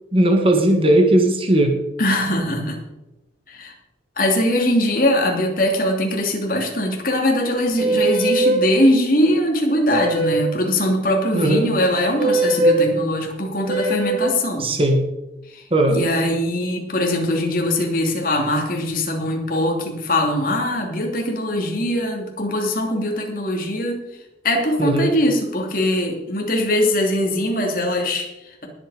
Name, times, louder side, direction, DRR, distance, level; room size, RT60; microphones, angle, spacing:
voice 1, 0.1-1.8 11.3-11.7 14.6-15.0 15.7-16.0 24.8-25.1, right 1 dB, 30° right, 3 dB, 1.5 m, -17 dB
voice 2, 2.0-2.8 3.5-3.7 4.2-14.7 15.5-24.0 24.4-28.7, left 1 dB, 50° left, 1 dB, 2.9 m, -21 dB
sound 1, 7.7-8.7 9.9-10.5 12.2-12.8 13.7-14.3, right 2 dB, 50° right, 4.4 m, -20 dB
20.0 x 8.4 x 5.0 m, 0.98 s
head